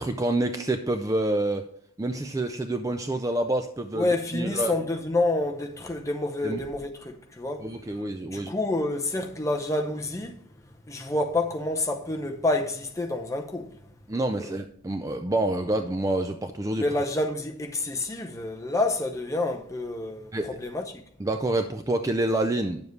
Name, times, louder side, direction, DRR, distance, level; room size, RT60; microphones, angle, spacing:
voice 1, 0.0-1.6 2.0-4.7 6.4-6.6 7.6-8.5 14.1-16.8 20.3-20.5 21.2-22.8, right 1 dB, 15° right, 0.4 m, -27 dB
voice 2, 3.9-7.7 8.3-10.4 10.9-13.8 14.4-14.5 16.8-21.0, left 2 dB, 15° left, 0.7 m, -28 dB
9.5 x 7.1 x 3.2 m
head